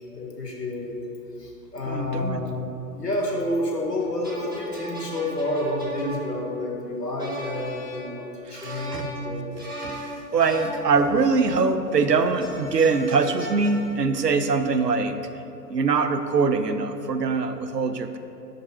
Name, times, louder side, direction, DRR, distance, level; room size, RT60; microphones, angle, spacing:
voice 1, 0.1-1.0 1.4-2.7 2.9-9.7, left 1 dB, 80° left, -1 dB, 1.4 m, -29 dB
voice 2, 1.9-2.4 8.5-9.1 9.8-15.2 15.7-18.2, right 4 dB, 85° right, 9 dB, 0.6 m, -23 dB
sound 1, 4.0-11.5 12.4-13.9, equal, 15° right, 0.4 m, -38 dB
5.4 x 5.3 x 4.2 m, 2.7 s
figure-of-eight pair, 115°, 48 cm